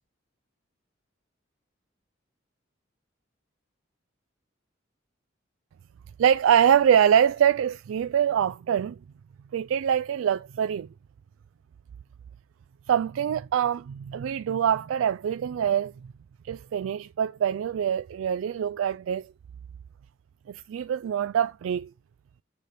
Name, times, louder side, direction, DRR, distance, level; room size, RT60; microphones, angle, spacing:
voice 1, 6.2-9.0 9.5-10.9 12.9-15.9 16.4-19.3 20.5-21.9, right 9 dB, 85° right, 0.3 m, -24 dB
6.8 x 4.9 x 5.2 m
head